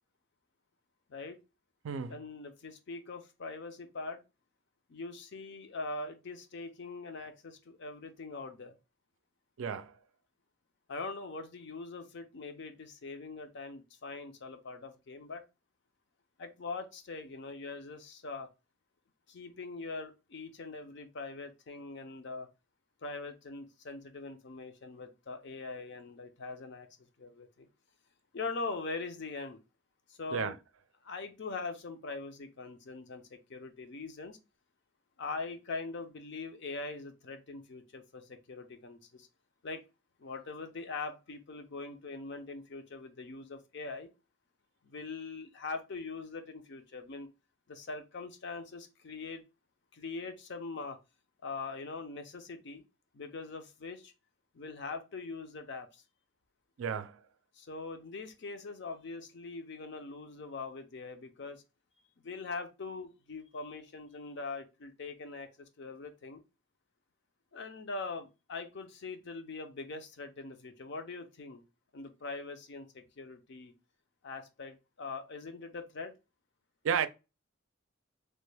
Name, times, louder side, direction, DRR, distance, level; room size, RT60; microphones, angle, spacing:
voice 1, 2.1-4.2 4.9-8.7 10.9-15.4 16.4-18.5 19.3-22.5 23.0-26.9 27.2-27.7 28.3-29.6 30.1-30.6 31.0-34.4 35.2-39.3 39.6-39.8 40.2-44.1 44.8-47.3 47.7-49.4 49.9-51.0 51.4-52.8 53.1-54.1 54.5-56.0 57.6-61.6 62.2-66.4 67.5-71.6 71.9-73.7 74.2-76.1, left 3 dB, 60° left, 0.6 m, -42 dB
voice 2, 9.6-10.0 30.3-30.5 56.8-57.2 76.8-77.1, right 7 dB, 80° right, 0.4 m, -32 dB
3.2 x 2.2 x 3.2 m
head